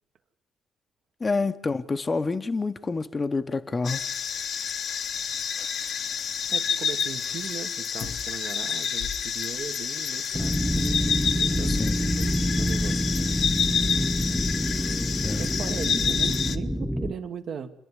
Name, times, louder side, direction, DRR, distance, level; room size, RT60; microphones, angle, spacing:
voice 1, 1.2-4.1 11.7-12.0 15.2-15.4, left 3 dB, 30° left, 0.8 m, -28 dB
sound 1, 3.8-16.6, left 7 dB, 65° left, 1.0 m, -29 dB
voice 2, 6.5-13.1 15.4-17.7, right 7 dB, 65° right, 1.5 m, -38 dB
sound 2, 10.3-17.1, equal, ahead, 1.0 m, -27 dB
28.0 x 11.0 x 9.9 m
cardioid pair, 90°, 0 cm